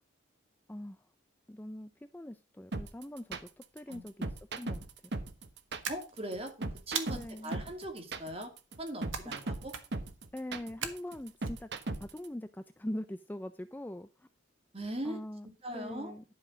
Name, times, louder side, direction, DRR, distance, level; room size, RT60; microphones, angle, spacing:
voice 1, 0.7-1.1 1.5-4.9 7.1-7.5 10.3-11.7 12.0-14.3 15.0-16.2, left 1 dB, 10° left, 10 dB, 0.4 m, -42 dB
sound 1, 2.7-12.3, right 2 dB, 55° right, 1.1 m, -37 dB
sound 2, 5.8-6.4 7.0-7.5 9.1-9.4 9.7-10.1 10.8-11.5, right 7 dB, 85° right, 1.6 m, -39 dB
voice 2, 5.9-8.5 8.8-9.7 14.7-15.2 15.6-16.1, right 1 dB, 30° right, 3 dB, 2.5 m, -40 dB
11.5 x 5.8 x 5.1 m, 0.32 s
head